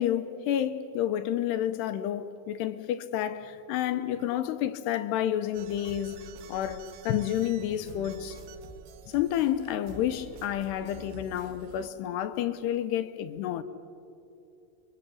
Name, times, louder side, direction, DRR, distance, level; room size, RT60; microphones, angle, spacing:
voice 1, 0.0-6.2 6.5-8.4 9.1-13.6, left 11 dB, 80° left, 2.8 m, -30 dB
sound 1, 5.5-11.9, right 5 dB, 75° right, 3.3 m, -47 dB
28.0 x 23.0 x 8.5 m
omnidirectional pair, 5.1 m